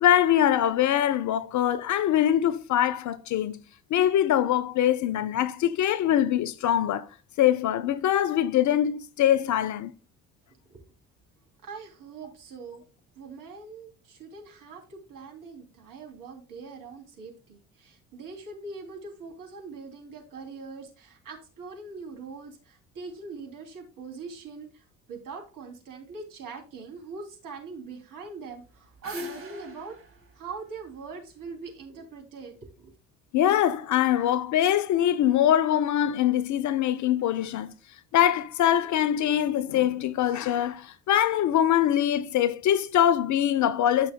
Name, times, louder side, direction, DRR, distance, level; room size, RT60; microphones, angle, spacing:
voice 1, 0.0-3.6 3.9-7.1 7.4-9.9 33.3-37.7 38.1-44.1, left 11 dB, 45° left, 0.7 m, -23 dB
voice 2, 11.6-12.8 13.1-30.0 30.3-32.9, right 4 dB, 50° right, 3.0 m, -42 dB
sound 1, 28.5-31.7, left 1 dB, 35° right, 2.4 m, -42 dB
12.5 x 6.2 x 2.2 m
figure-of-eight pair, 50°, 41 cm